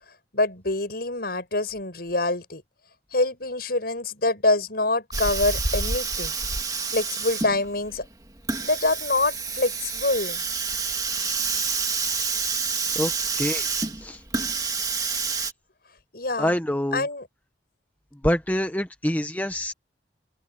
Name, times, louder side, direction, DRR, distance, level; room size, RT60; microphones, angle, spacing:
voice 1, 0.3-2.6 3.1-6.3 6.9-8.0 8.6-10.4 16.1-16.5 16.9-17.3, left 2 dB, 60° left, 7.1 m, -25 dB
Hiss, 5.1-15.5, right 4 dB, 20° right, 2.1 m, -28 dB
voice 2, 16.4-17.0 18.2-19.7, equal, 10° left, 1.3 m, -25 dB
open air
head